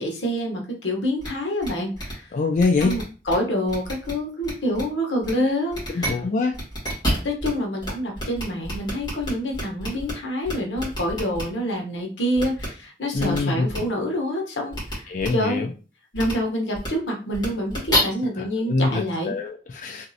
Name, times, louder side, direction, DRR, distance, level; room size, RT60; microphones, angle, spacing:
voice 1, 0.0-2.3 2.8-6.1 7.2-15.6 16.1-19.3, equal, 90° left, 1 dB, 0.9 m, -27 dB
sound 1, 1.2-1.3 1.6-1.7 2.0-2.1 2.6-3.3 3.7-4.1 4.4-4.8 5.2-5.3 5.7-6.1 6.5-7.5 7.8-7.9 8.2-10.1 10.4-11.4 12.4-12.7 13.2-13.4 13.7-13.8 14.7-14.9 15.2-15.3 16.1-16.3 16.7-16.9 17.3-18.0, equal, 25° left, 1.7 m, -28 dB
voice 2, 2.3-3.0 5.9-6.6 13.1-13.7 15.1-15.7 18.4-20.1, left 3 dB, 45° left, 3 dB, 0.3 m, -24 dB
3.0 x 2.6 x 2.7 m, 0.35 s
head